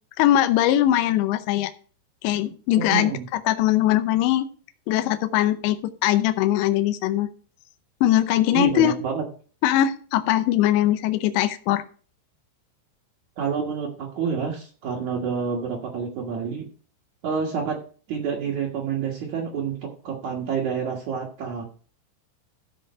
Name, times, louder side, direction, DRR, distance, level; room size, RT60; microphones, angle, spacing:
voice 1, 0.2-1.7 2.2-4.5 4.9-5.8 6.0-7.3 8.0-8.9 9.6-11.8, left 12 dB, 80° left, 9 dB, 2.9 m, -21 dB
voice 2, 2.8-3.3 8.5-9.2 13.4-16.7 17.2-17.8 18.1-21.6, right 6 dB, 60° right, -4 dB, 2.0 m, -28 dB
15.0 x 5.3 x 4.3 m, 0.40 s
omnidirectional pair, 5.5 m